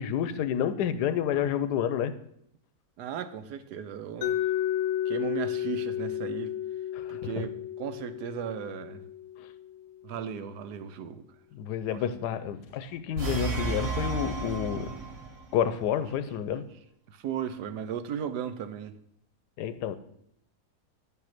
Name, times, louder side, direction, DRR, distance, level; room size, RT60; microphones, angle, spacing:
voice 1, 0.0-2.1 6.9-7.5 11.5-15.0 15.5-16.6 19.6-20.0, left 9 dB, 90° left, 1.2 m, -29 dB
voice 2, 3.0-4.4 5.1-6.5 7.1-9.0 10.0-11.2 11.9-12.0 17.1-19.0, right 8 dB, 80° right, 1.3 m, -36 dB
Mallet percussion, 4.2-10.0, left 11 dB, 75° left, 1.0 m, -32 dB
sound 1, 13.2-15.4, right 4 dB, 60° right, 1.7 m, -32 dB
9.8 x 5.6 x 5.9 m
omnidirectional pair, 1.7 m